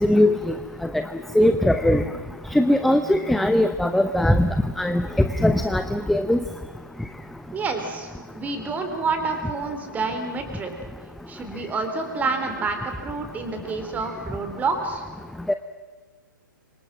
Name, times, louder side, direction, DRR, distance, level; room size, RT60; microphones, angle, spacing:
voice 1, 0.0-0.5 0.9-1.0 1.3-2.0 2.5-4.5 4.8-6.4 15.5-15.6, left 1 dB, ahead, 9 dB, 0.7 m, -20 dB
voice 2, 7.5-10.7 11.3-15.0, right 4 dB, 15° right, 6 dB, 3.7 m, -28 dB
28.5 x 25.5 x 6.0 m, 1.3 s
figure-of-eight pair, 125°, 11 cm